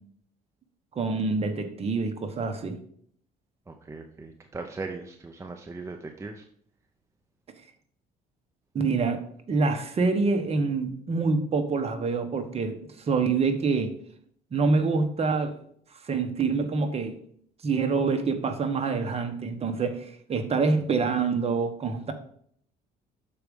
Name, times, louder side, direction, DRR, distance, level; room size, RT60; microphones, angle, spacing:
voice 1, 0.9-2.8 8.7-12.8 13.1-13.9 14.5-15.6 16.0-17.2 17.6-22.1, right 4 dB, 35° right, 1.2 m, -26 dB
voice 2, 3.7-6.5, right 3 dB, 15° right, 0.7 m, -39 dB
6.7 x 4.8 x 5.3 m
cardioid pair, 110°, 17 cm